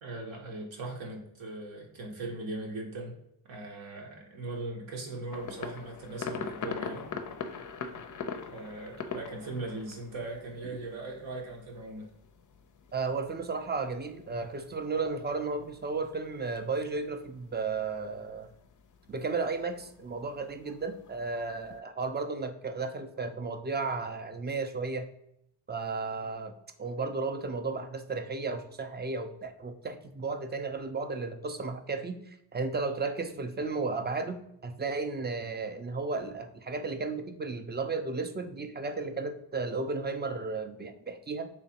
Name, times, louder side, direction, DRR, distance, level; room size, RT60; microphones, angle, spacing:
voice 1, 0.0-3.2 3.5-7.1 8.5-12.1, right 2 dB, 75° right, 1 dB, 1.0 m, -39 dB
sound 1, 5.3-21.8, left 5 dB, 40° left, 0.5 m, -44 dB
voice 2, 12.9-18.5 19.1-25.1 25.7-26.5 26.8-41.5, right 4 dB, 20° right, 8 dB, 0.4 m, -34 dB
3.2 x 3.0 x 2.8 m, 0.77 s
cardioid pair, 55°, 48 cm